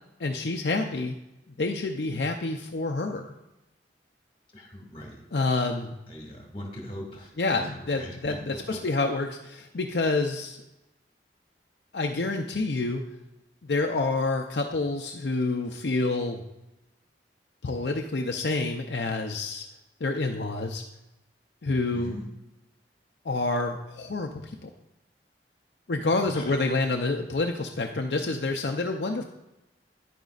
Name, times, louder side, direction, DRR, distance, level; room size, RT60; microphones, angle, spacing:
voice 1, 0.2-1.2 1.6-3.3 5.3-6.0 7.4-10.6 11.9-13.0 13.6-16.4 17.6-19.6 20.0-20.8 21.6-22.1 23.2-24.7 25.9-29.2, left 3 dB, 65° left, 3 dB, 0.6 m, -28 dB
voice 2, 4.5-5.2 6.1-8.2 21.9-22.3 26.2-26.5, left 1 dB, 30° left, 0 dB, 2.1 m, -41 dB
10.0 x 9.2 x 2.4 m, 0.92 s
head